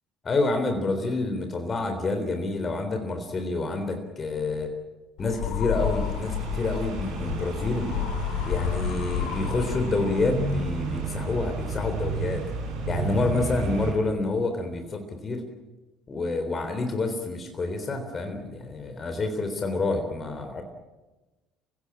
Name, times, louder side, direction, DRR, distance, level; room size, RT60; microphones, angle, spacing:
voice 1, 0.2-4.7 5.2-7.9 8.4-12.4 12.9-15.4 16.1-20.6, left 3 dB, 35° left, 6 dB, 3.6 m, -28 dB
sound 1, 5.2-10.5, left 10 dB, 65° left, 2.3 m, -31 dB
sound 2, 5.7-13.9, right 3 dB, 70° right, 6.8 m, -32 dB
27.0 x 16.0 x 8.8 m, 1.1 s
figure-of-eight pair, 55°, 0 cm